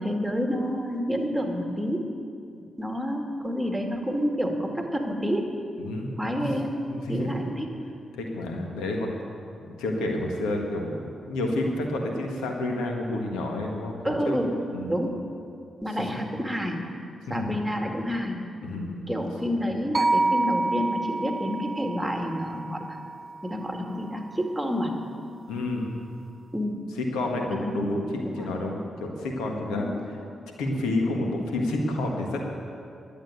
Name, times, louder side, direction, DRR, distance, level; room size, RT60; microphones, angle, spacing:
voice 1, 0.0-2.1 2.8-5.5 6.2-6.8 7.1-7.8 14.0-14.5 14.9-15.3 15.8-16.9 17.3-18.4 19.1-23.0 23.4-25.0 26.5-26.8 27.5-27.8 28.2-28.5 29.7-30.0, equal, 10° right, 2 dB, 2.2 m, -29 dB
voice 2, 5.8-6.1 6.4-6.5 6.9-7.3 8.2-9.1 9.5-14.3 14.7-14.9 17.3-17.6 18.6-19.1 25.5-25.8 27.0-29.9 30.6-32.4, left 2 dB, 85° left, 1 dB, 1.6 m, -29 dB
sound 1, 19.9-24.2, right 2 dB, 40° right, 0.5 m, -28 dB
11.5 x 7.8 x 9.4 m, 2.5 s
supercardioid pair, 45°, 0 cm